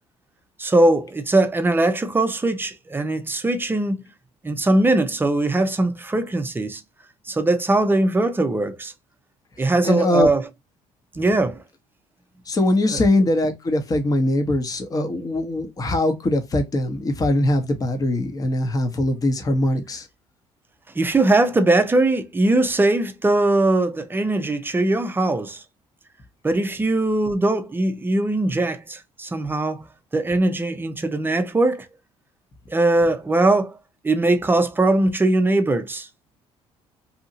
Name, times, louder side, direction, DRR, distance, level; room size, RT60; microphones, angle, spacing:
voice 1, 0.6-4.1 4.4-6.8 7.3-8.9 9.6-10.5 11.1-11.6 12.9-13.0 20.9-25.6 26.4-29.9 30.1-31.9 32.7-33.8 34.0-36.1, right 2 dB, 15° right, 0.6 m, -20 dB
voice 2, 9.8-10.3 12.5-20.1, left 1 dB, 30° left, 0.9 m, -21 dB
2.8 x 2.6 x 2.5 m
cardioid pair, 95°, 12 cm